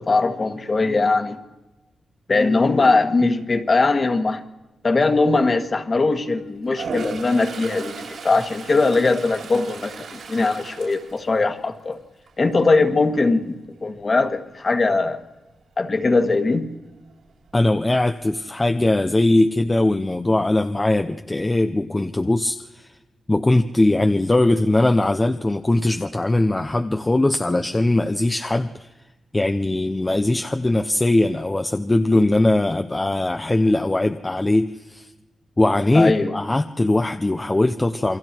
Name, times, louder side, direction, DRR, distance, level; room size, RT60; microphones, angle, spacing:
voice 1, 0.0-1.4 2.3-4.4 4.8-12.0 12.4-15.2 15.8-16.7 35.9-36.3, left 3 dB, 35° left, 7 dB, 1.8 m, -20 dB
Toilet flush, 6.7-11.9 12.3-12.6 17.1-17.2 17.5-18.2, right 4 dB, 75° right, 7.3 m, -36 dB
voice 2, 17.5-22.9 23.3-28.9 29.3-35.1 35.6-38.2, left 2 dB, 15° left, 6 dB, 0.7 m, -20 dB
28.5 x 23.0 x 4.6 m, 1.1 s
wide cardioid pair, 125°, 0 cm